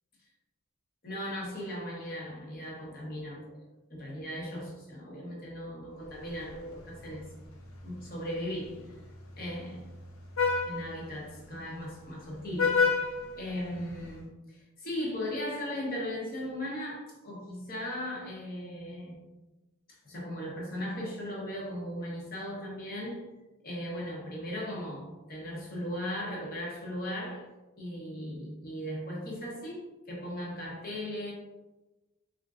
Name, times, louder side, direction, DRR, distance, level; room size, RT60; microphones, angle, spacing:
voice 1, 1.0-3.6 3.9-7.3 7.8-8.9 9.4-9.8 10.7-13.1 13.4-19.2 20.0-23.2 23.6-27.5 27.8-31.3, equal, 45° left, -3 dB, 0.9 m, -37 dB
Vehicle horn car horn honking, 6.1-14.2, left 4 dB, 80° left, 0.5 m, -34 dB
3.6 x 2.5 x 2.4 m, 1.1 s
head